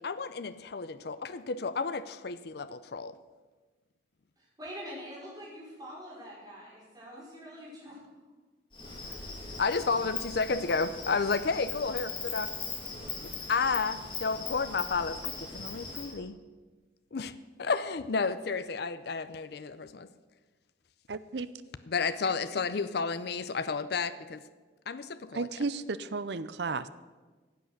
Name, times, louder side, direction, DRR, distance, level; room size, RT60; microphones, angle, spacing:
voice 1, 0.0-3.2 9.6-12.5 13.5-16.4 17.1-17.3 17.6-20.1 21.9-24.4 24.9-25.5, left 4 dB, 55° left, 13 dB, 0.5 m, -31 dB
voice 2, 4.4-8.0 8.8-8.9, equal, 20° right, -6 dB, 5.0 m, -45 dB
Insect, 8.7-16.1, left 4 dB, 25° left, 2.7 m, -39 dB
voice 3, 21.1-21.5 25.3-26.9, right 4 dB, 60° right, 15 dB, 0.6 m, -33 dB
15.5 x 8.1 x 6.6 m, 1.3 s
head